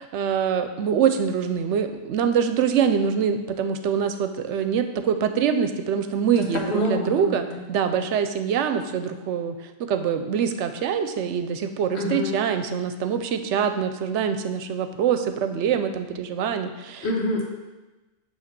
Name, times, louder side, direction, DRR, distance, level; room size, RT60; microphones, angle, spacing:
voice 1, 0.0-9.6 9.9-17.1, right 7 dB, 75° right, 8 dB, 0.9 m, -24 dB
voice 2, 6.3-7.6 11.9-12.3 17.0-17.5, left 1 dB, 65° left, 0 dB, 1.4 m, -26 dB
8.5 x 3.0 x 5.8 m, 1.1 s
omnidirectional pair, 1.2 m